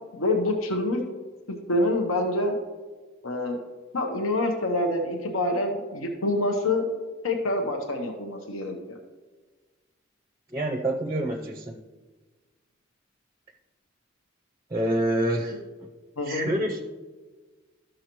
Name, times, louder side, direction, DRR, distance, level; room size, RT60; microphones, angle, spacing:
voice 1, 0.1-1.0 1.7-2.6 3.2-3.6 3.9-6.9 7.2-9.0 16.2-16.5, left 1 dB, 80° left, 3 dB, 1.0 m, -26 dB
voice 2, 10.5-11.8 14.7-15.9 16.2-16.8, right 1 dB, 20° right, 4 dB, 0.5 m, -27 dB
13.0 x 6.4 x 3.0 m, 1.3 s
head